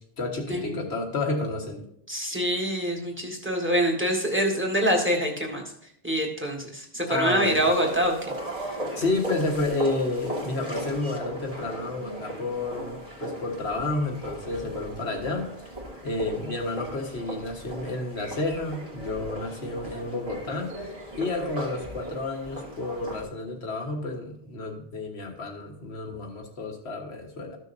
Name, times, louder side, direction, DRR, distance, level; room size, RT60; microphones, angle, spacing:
voice 1, 0.2-1.8 7.1-7.6 9.0-15.5 16.0-27.6, left 2 dB, 75° left, 1 dB, 1.7 m, -30 dB
voice 2, 2.1-5.6 6.0-8.1, equal, 10° right, 0 dB, 1.7 m, -25 dB
sound 1, 7.4-23.2, right 1 dB, 35° right, 1.9 m, -38 dB
14.0 x 6.4 x 2.7 m, 0.73 s
omnidirectional pair, 1.1 m